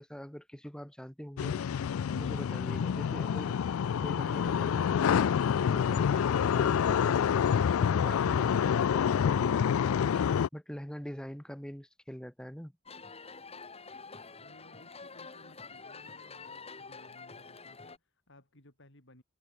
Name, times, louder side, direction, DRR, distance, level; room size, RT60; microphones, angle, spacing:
voice 1, 0.0-1.6 2.1-12.7, equal, 5° left, 1.2 m, -44 dB
sound 1, 1.4-10.5, left 8 dB, 85° left, 0.4 m, -27 dB
sound 2, 12.9-18.0, left 4 dB, 30° left, 3.6 m, -47 dB
voice 2, 14.4-19.2, left 1 dB, 60° left, 6.4 m, -59 dB
head